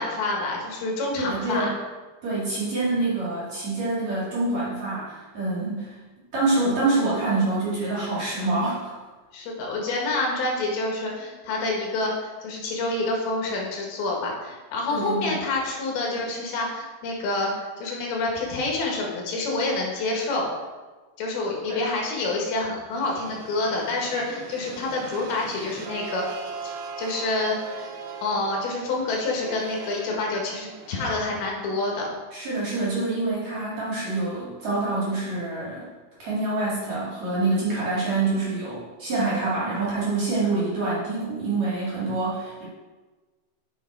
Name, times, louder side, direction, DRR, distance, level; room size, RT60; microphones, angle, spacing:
voice 1, 0.0-1.7 9.3-20.5 21.2-26.2 26.6-26.7 27.0-27.9 28.2-32.1, left 2 dB, 70° left, -1 dB, 3.2 m, -27 dB
voice 2, 1.1-1.7 2.2-6.0 6.3-8.9 14.9-15.4 21.7-21.8 32.3-35.9 36.2-42.6, right 2 dB, 45° right, -7 dB, 3.2 m, -26 dB
sound 1, 22.9-31.2, right 5 dB, 75° right, 2.3 m, -40 dB
9.2 x 6.0 x 4.5 m, 1.3 s
omnidirectional pair, 4.7 m